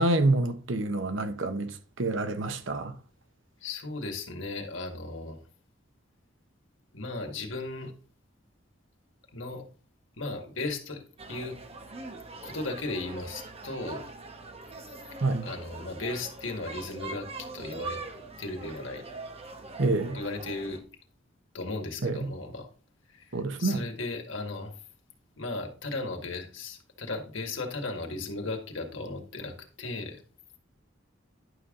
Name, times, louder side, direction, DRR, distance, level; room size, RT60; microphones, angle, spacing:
voice 1, 0.0-3.0 15.2-15.5 19.8-20.2 22.0-22.3 23.3-23.8, right 2 dB, 70° right, 1.0 m, -27 dB
voice 2, 3.6-5.4 6.9-7.9 9.3-9.6 10.2-11.0 11.3-11.6 12.4-14.1 15.1-18.0 18.4-19.0 20.1-20.8 21.5-22.7 23.1-24.8 25.4-30.2, left 3 dB, 70° left, 2.0 m, -36 dB
sound 1, 11.2-20.8, right 3 dB, 30° right, 1.2 m, -42 dB
11.0 x 5.7 x 3.8 m
head